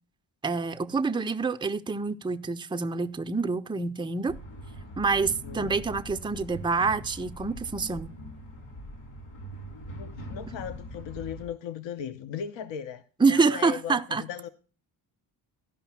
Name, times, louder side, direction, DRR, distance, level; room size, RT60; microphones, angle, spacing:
voice 1, 0.4-4.4 5.0-8.1 13.2-14.2, right 4 dB, 10° right, 0.6 m, -27 dB
sound 1, 4.3-11.5, equal, 80° left, 4.1 m, -42 dB
voice 2, 5.3-5.7 9.9-14.5, left 8 dB, 60° left, 0.8 m, -38 dB
12.5 x 5.4 x 5.9 m
supercardioid pair, 50°, 49 cm